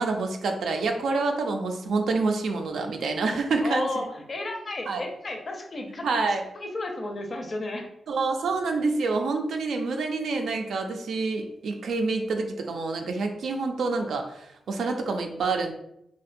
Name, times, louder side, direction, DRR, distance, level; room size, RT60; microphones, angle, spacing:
voice 1, 0.0-4.0 4.9-5.0 6.0-6.4 8.1-15.7, right 3 dB, 85° right, 4 dB, 0.3 m, -27 dB
voice 2, 3.6-6.1 6.5-7.9, left 2 dB, 45° left, 3 dB, 0.5 m, -33 dB
2.6 x 2.1 x 2.5 m, 0.79 s
cardioid pair, 80°, 0 cm